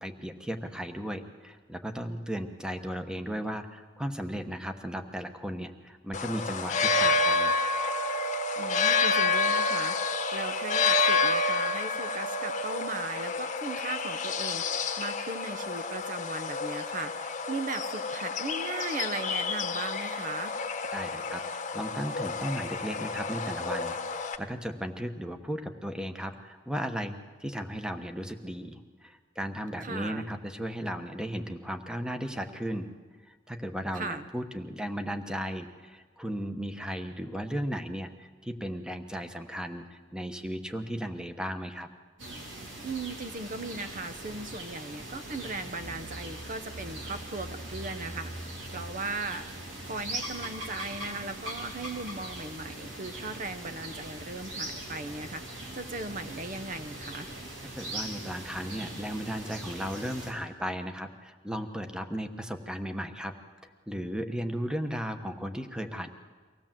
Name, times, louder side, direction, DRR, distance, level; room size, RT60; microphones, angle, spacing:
voice 1, 0.0-7.5 20.9-32.9 33.3-41.9 57.8-63.3 63.9-66.1, equal, 5° right, 7 dB, 1.1 m, -35 dB
sound 1, 6.1-24.4, left 3 dB, 40° left, 1.1 m, -29 dB
voice 2, 8.6-10.0 10.3-20.5 29.8-30.3 33.9-34.2 42.8-57.3, right 3 dB, 45° right, 10 dB, 0.8 m, -38 dB
sound 2, 42.2-60.3, right 1 dB, 90° right, 4.0 m, -41 dB
24.5 x 17.0 x 7.5 m, 1.4 s
head